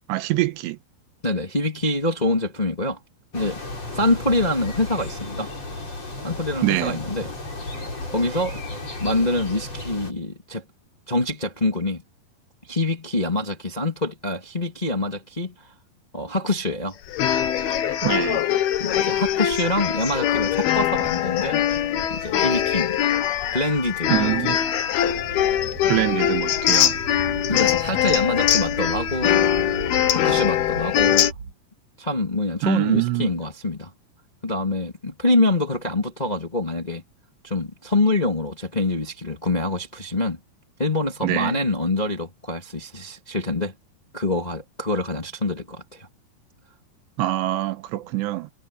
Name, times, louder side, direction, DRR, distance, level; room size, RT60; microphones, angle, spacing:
voice 1, 0.1-0.8 6.6-7.0 18.0-18.4 24.1-24.6 25.9-27.0 32.6-33.3 41.2-41.6 47.2-48.5, right 17 dB, 90° right, 3.2 m, -24 dB
voice 2, 1.2-3.0 3.3-3.6 3.9-5.5 6.2-7.3 8.1-8.6 9.0-10.6 11.1-12.0 12.7-15.7 16.1-17.0 18.8-21.7 22.1-23.1 23.5-24.3 27.5-29.5 30.1-31.3 32.0-33.9 34.4-37.0 37.4-40.4 40.8-43.7 44.1-46.1, left 2 dB, 20° left, 1.3 m, -25 dB
sound 1, 3.3-10.1, left 2 dB, 35° left, 9.1 m, -34 dB
sound 2, 17.1-31.3, left 11 dB, 70° left, 3.2 m, -22 dB
sound 3, 23.2-31.5, right 5 dB, 55° right, 2.4 m, -38 dB
omnidirectional pair, 4.8 m